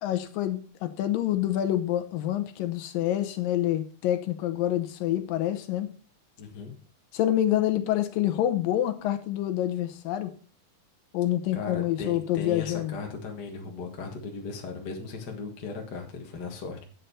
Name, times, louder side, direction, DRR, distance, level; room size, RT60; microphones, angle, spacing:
voice 1, 0.0-5.9 7.1-10.3 11.1-13.0, left 12 dB, 80° left, 2.5 m, -27 dB
voice 2, 6.4-6.7 11.5-16.8, left 4 dB, 40° left, 1.7 m, -37 dB
9.1 x 6.7 x 5.6 m
omnidirectional pair, 4.1 m